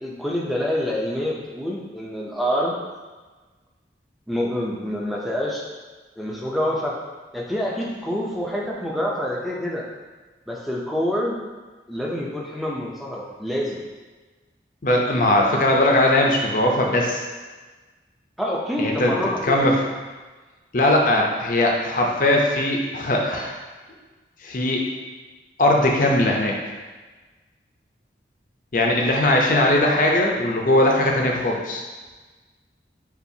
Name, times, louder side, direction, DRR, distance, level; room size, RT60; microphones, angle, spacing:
voice 1, 0.0-2.8 4.3-5.6 6.2-6.9 7.3-9.8 10.5-11.4 11.9-13.8 18.4-19.7, equal, ahead, -3 dB, 0.5 m, -26 dB
voice 2, 14.8-17.2 18.8-19.1 19.4-19.7 20.7-23.5 24.4-24.8 25.6-26.6 28.7-31.8, left 1 dB, 45° left, 0 dB, 0.6 m, -19 dB
6.8 x 2.4 x 2.7 m, 1.3 s
head